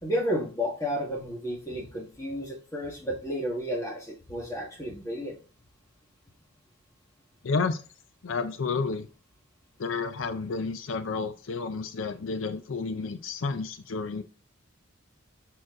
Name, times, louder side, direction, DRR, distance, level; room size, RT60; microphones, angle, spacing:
voice 1, 0.0-5.4, equal, 15° left, -1 dB, 1.7 m, -32 dB
voice 2, 7.4-7.8 8.2-9.1 9.8-14.2, left 4 dB, 70° left, 9 dB, 0.5 m, -31 dB
6.4 x 4.4 x 3.7 m, 0.35 s
head